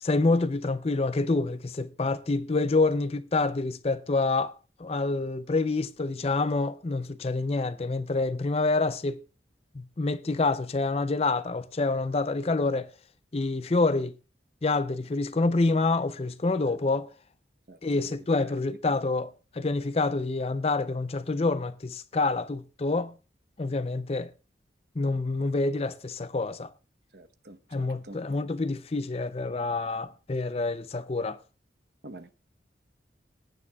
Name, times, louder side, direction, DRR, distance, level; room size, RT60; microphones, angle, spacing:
voice 1, 0.0-4.5 4.8-9.2 9.7-12.9 13.3-14.1 14.6-17.1 17.8-23.1 23.6-24.3 25.0-26.7 27.7-31.4, left 3 dB, 35° left, 0.5 m, -27 dB
voice 2, 17.7-18.1 18.4-18.6 27.1-28.2 32.0-32.3, right 2 dB, 60° right, 1.0 m, -48 dB
21.0 x 9.9 x 2.3 m
head